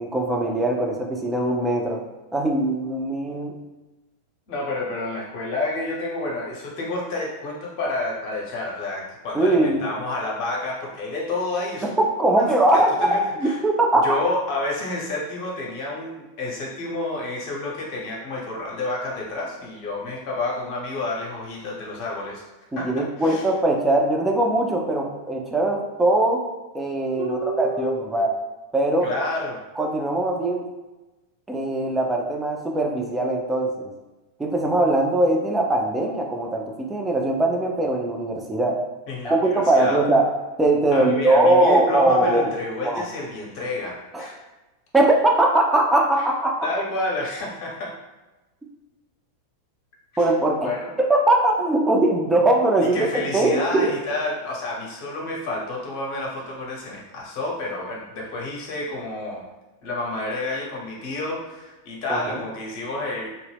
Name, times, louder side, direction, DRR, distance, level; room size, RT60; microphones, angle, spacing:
voice 1, 0.0-2.0 2.3-3.5 9.3-9.9 12.0-14.1 22.8-26.4 26.7-28.3 28.7-29.1 29.8-30.7 31.5-33.9 34.4-38.8 39.2-40.3 40.6-42.5 42.8-43.0 44.1-44.3 44.9-46.6 50.2-50.7 51.0-53.1 53.3-53.9 62.1-62.4, right 2 dB, 10° right, 1 dB, 0.4 m, -21 dB
voice 2, 4.5-13.6 13.9-22.4 22.7-23.5 27.2-28.0 29.0-29.6 39.1-40.1 40.9-44.4 46.2-46.3 46.6-47.9 50.1-50.3 50.6-51.0 52.8-59.4 59.8-63.3, left 2 dB, 45° left, -2 dB, 0.7 m, -30 dB
2.1 x 2.0 x 3.4 m, 1.1 s
figure-of-eight pair, 90°, 0 cm